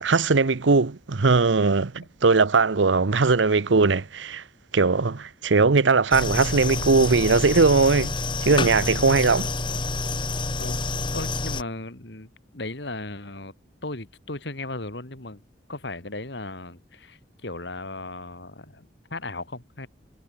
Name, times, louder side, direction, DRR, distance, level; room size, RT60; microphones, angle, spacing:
voice 1, 0.0-4.4 4.7-8.1 8.4-9.5, right 4 dB, 85° right, 0.8 m, -20 dB
sound 1, 6.1-11.6, left 3 dB, 25° left, 1.7 m, -28 dB
voice 2, 11.1-13.5 13.8-15.4 15.7-19.9, left 2 dB, 65° left, 2.8 m, -36 dB
head